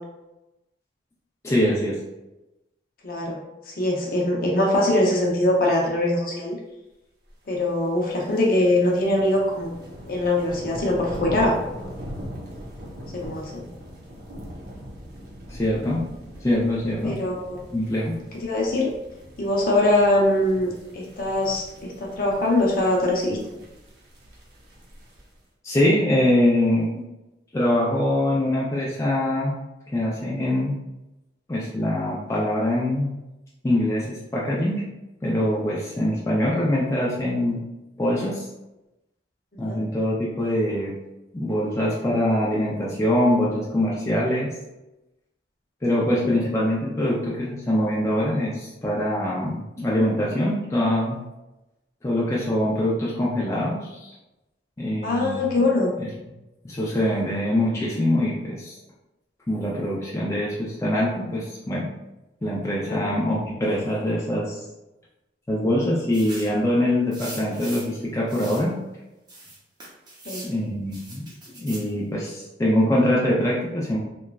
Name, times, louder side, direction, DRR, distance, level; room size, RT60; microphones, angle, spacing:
voice 1, 1.4-2.0 15.5-16.0 16.4-17.2 17.7-18.2 25.6-26.9 27.5-29.5 29.9-30.8 31.5-33.1 33.6-34.8 35.2-37.6 38.0-38.5 39.6-40.9 41.3-44.5 45.8-51.2 52.0-54.1 54.8-55.6 56.6-58.8 59.5-61.9 62.4-64.6 65.5-68.8 70.4-71.3 71.6-74.0, left 1 dB, 15° left, -5 dB, 0.4 m, -23 dB
voice 2, 3.0-3.4 3.7-6.6 7.5-9.7 10.0-11.6 13.1-13.7 17.0-17.7 18.3-18.9 19.4-23.4 39.6-39.8 46.2-46.5 55.0-55.9 62.9-63.1 70.3-70.5, left 1 dB, 55° left, -2 dB, 0.6 m, -22 dB
sound 1, 7.9-25.4, equal, 65° right, 0.7 m, -41 dB
sound 2, 66.1-66.6 67.1-67.9 68.3-68.7 69.3-70.5 70.9-71.9, right 2 dB, 25° right, 0.7 m, -40 dB
3.0 x 2.2 x 2.3 m, 0.96 s
head